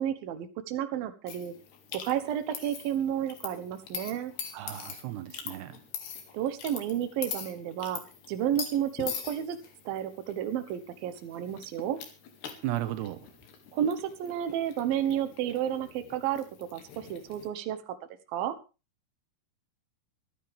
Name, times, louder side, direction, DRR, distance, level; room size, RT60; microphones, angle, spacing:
voice 1, 0.0-1.5 1.9-4.3 6.3-8.0 8.3-9.6 9.9-12.0 13.7-18.0 18.3-18.6, right 10 dB, 70° right, 10 dB, 2.9 m, -31 dB
sound 1, 1.3-17.5, left 7 dB, 80° left, 4.3 m, -43 dB
voice 2, 4.5-5.8 12.6-13.3, right 14 dB, 85° right, 11 dB, 3.0 m, -35 dB
24.5 x 10.5 x 3.5 m, 0.32 s
omnidirectional pair, 4.7 m